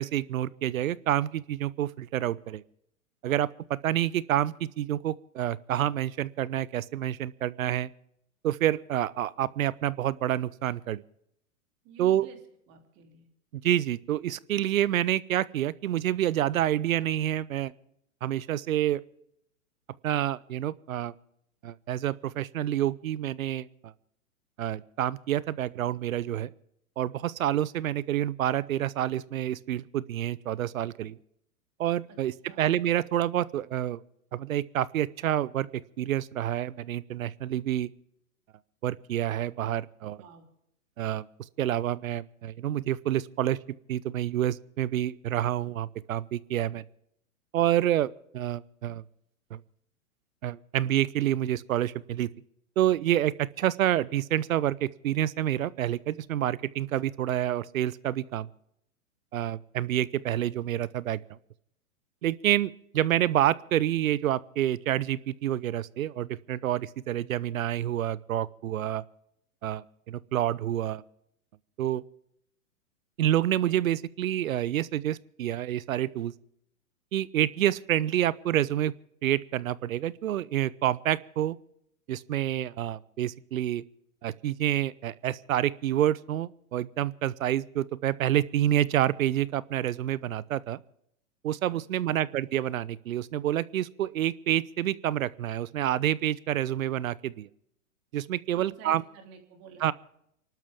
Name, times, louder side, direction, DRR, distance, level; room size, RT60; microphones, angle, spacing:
voice 1, 0.0-2.6 3.2-7.9 8.4-11.0 12.0-12.3 13.5-17.7 18.2-19.0 20.0-21.1 21.6-23.9 24.6-26.5 27.0-31.2 31.8-34.0 34.3-37.9 38.8-40.2 41.0-41.3 41.6-43.6 43.9-46.8 47.5-49.0 49.5-49.6 50.4-52.3 52.8-58.5 59.3-61.2 62.2-69.0 69.6-71.0 71.8-72.0 73.2-76.3 77.1-78.9 79.2-81.6 82.1-83.8 84.2-90.8 91.4-97.5 98.1-99.0 99.8-99.9, right 12 dB, 70° right, 20 dB, 0.8 m, -28 dB
voice 2, 11.8-12.4 12.7-13.3 32.1-32.2 32.5-32.7 40.2-40.5 91.7-92.2 98.5-99.9, right 6 dB, 35° right, 4 dB, 3.1 m, -51 dB
29.0 x 12.0 x 3.6 m, 0.74 s
hypercardioid pair, 125°, 42 cm